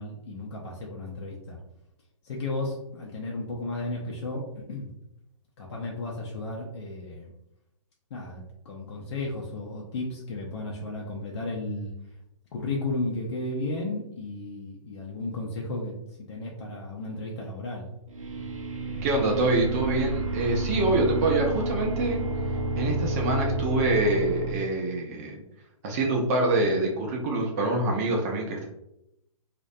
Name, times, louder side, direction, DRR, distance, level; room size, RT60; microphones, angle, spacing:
voice 1, 0.0-1.6 2.2-4.4 4.7-4.9 5.6-7.3 8.1-11.9 12.5-17.9, left 2 dB, 50° left, -2 dB, 0.5 m, -34 dB
sound 1, 18.1-24.5, right 2 dB, 75° right, 0.5 m, -30 dB
voice 2, 19.0-22.2 22.8-25.4 25.8-28.7, right 2 dB, 25° right, 0 dB, 0.4 m, -25 dB
2.3 x 2.1 x 2.6 m, 0.84 s
hypercardioid pair, 135°, 17 cm